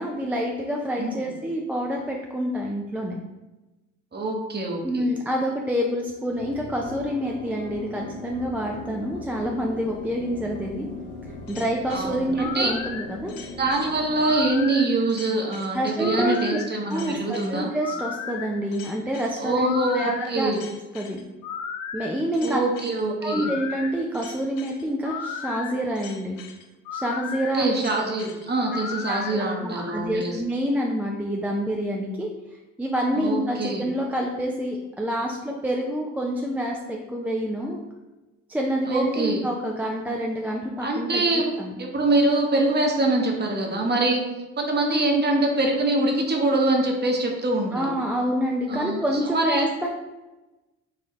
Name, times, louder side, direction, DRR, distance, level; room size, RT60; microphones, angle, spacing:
voice 1, 0.0-3.2 4.8-10.9 11.5-13.3 15.7-16.4 16.9-20.5 20.9-21.2 21.9-22.6 23.2-26.4 26.9-27.7 29.1-32.3 32.8-37.8 38.5-41.7 47.7-49.9, equal, 5° right, -1 dB, 0.4 m, -27 dB
voice 2, 4.1-5.1 11.9-12.7 13.6-17.7 19.4-20.6 22.4-23.5 27.5-30.3 33.1-33.9 38.9-39.4 40.8-41.5 41.8-44.2 44.6-47.9 48.7-49.0 49.3-49.7, right 2 dB, 30° right, 0 dB, 1.0 m, -24 dB
sound 1, 6.3-14.5, left 2 dB, 90° left, 1.5 m, -39 dB
sound 2, 11.5-29.3, left 6 dB, 65° left, 0.5 m, -36 dB
4.1 x 2.6 x 3.0 m, 1.1 s
hypercardioid pair, 55°, 36 cm